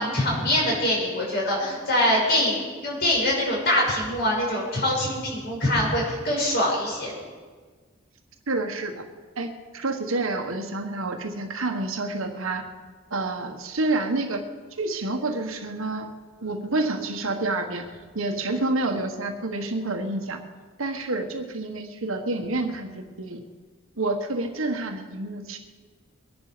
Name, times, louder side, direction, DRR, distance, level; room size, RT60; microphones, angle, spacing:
voice 1, 0.0-7.1, left 1 dB, 50° left, -3 dB, 5.6 m, -24 dB
voice 2, 8.5-9.0 9.4-12.6 13.1-14.4 14.8-16.1 16.4-20.4 20.8-23.4 24.0-25.6, right 2 dB, 80° right, 5 dB, 1.5 m, -28 dB
23.0 x 10.5 x 5.1 m, 1.5 s
head